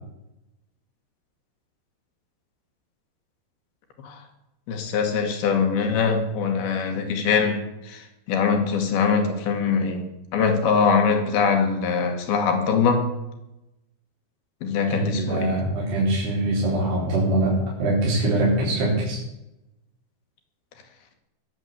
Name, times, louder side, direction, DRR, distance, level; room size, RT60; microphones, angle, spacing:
voice 1, 4.7-13.1 14.6-15.6, left 5 dB, 70° left, 4.0 m, -23 dB
voice 2, 14.9-19.2, right 1 dB, 75° right, 6.5 m, -23 dB
22.0 x 7.9 x 8.1 m
omnidirectional pair, 4.7 m